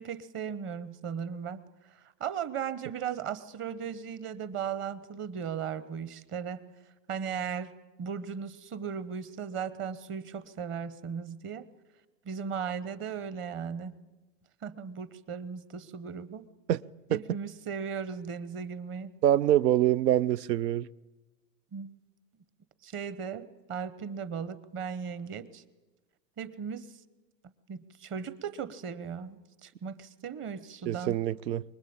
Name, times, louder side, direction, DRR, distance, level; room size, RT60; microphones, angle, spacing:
voice 1, 0.0-1.6 1.9-6.6 7.1-11.7 12.2-14.0 14.6-16.5 17.1-19.1 21.7-21.9 22.8-25.6 26.4-26.9 27.7-31.2, right 7 dB, 25° right, 1.0 m, -37 dB
voice 2, 19.2-20.9 30.9-31.6, right 12 dB, 85° right, 0.8 m, -25 dB
24.0 x 22.0 x 8.7 m
hypercardioid pair, 135°, 48 cm